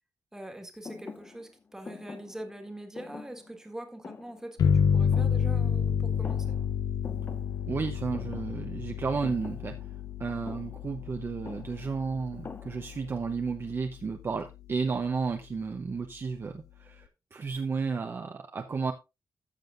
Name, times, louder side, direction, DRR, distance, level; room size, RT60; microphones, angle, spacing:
voice 1, 0.3-6.6, right 1 dB, 10° right, 4 dB, 1.6 m, -43 dB
Thump thud, 0.8-5.9 6.1-6.8 7.0-13.2, left 4 dB, 30° left, 0.8 m, -47 dB
sound 1, 4.6-13.9, left 7 dB, 65° left, 0.6 m, -30 dB
voice 2, 7.7-9.8 10.2-18.9, right 5 dB, 35° right, 5 dB, 0.7 m, -33 dB
13.5 x 7.5 x 2.5 m, 0.25 s
wide cardioid pair, 150°, 7 cm